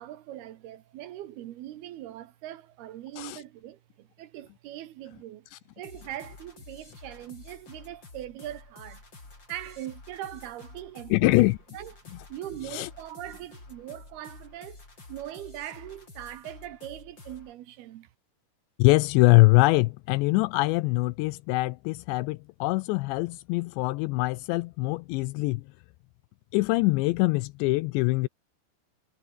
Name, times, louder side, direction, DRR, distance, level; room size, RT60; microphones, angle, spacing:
voice 1, 0.0-5.5 5.8-9.1 9.5-11.5 11.7-12.0 12.3-14.8 15.1-18.1, right 13 dB, 70° right, 2.9 m, -41 dB
sound 1, 5.8-17.5, left 3 dB, 25° left, 5.8 m, -49 dB
voice 2, 11.1-11.6 12.7-12.9 18.8-25.6 26.5-28.3, left 22 dB, 85° left, 2.8 m, -23 dB
omnidirectional pair, 5.2 m